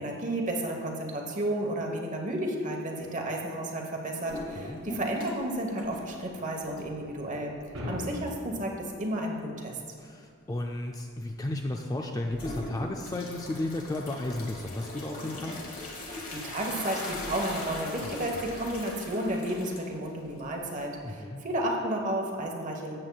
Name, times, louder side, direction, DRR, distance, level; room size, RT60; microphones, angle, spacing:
voice 1, 0.0-7.5 7.9-9.8 16.0-22.9, right 1 dB, 35° right, 1 dB, 1.1 m, -32 dB
sound 1, 4.3-5.5 5.8-7.1 7.6-7.7 8.3-8.4 12.3-21.1, left 1 dB, 35° left, 1.3 m, -40 dB
sound 2, 7.7-8.8, left 1 dB, 70° right, 1.8 m, -38 dB
voice 2, 10.0-15.6 18.0-18.1 21.0-21.4, left 1 dB, 15° left, 2 dB, 0.3 m, -34 dB
13.5 x 7.8 x 2.3 m, 2.4 s
head